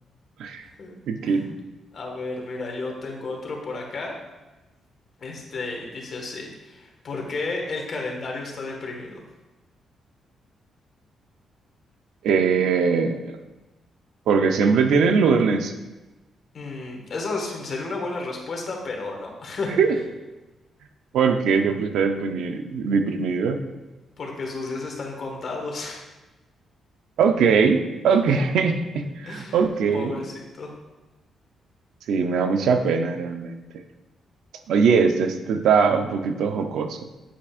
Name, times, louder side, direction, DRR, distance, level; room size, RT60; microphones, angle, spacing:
voice 1, 1.1-1.5 12.2-13.4 14.3-15.7 19.8-19.9 21.1-23.6 27.2-30.2 32.1-33.6 34.7-37.0, right 5 dB, 85° right, 6 dB, 0.6 m, -21 dB
voice 2, 1.9-4.1 5.2-9.2 16.5-19.8 24.2-26.0 28.3-28.4 29.2-29.7 29.9-30.7, left 3 dB, 45° left, 0 dB, 1.6 m, -32 dB
8.7 x 8.5 x 2.5 m, 1.1 s
cardioid pair, 165°, 0 cm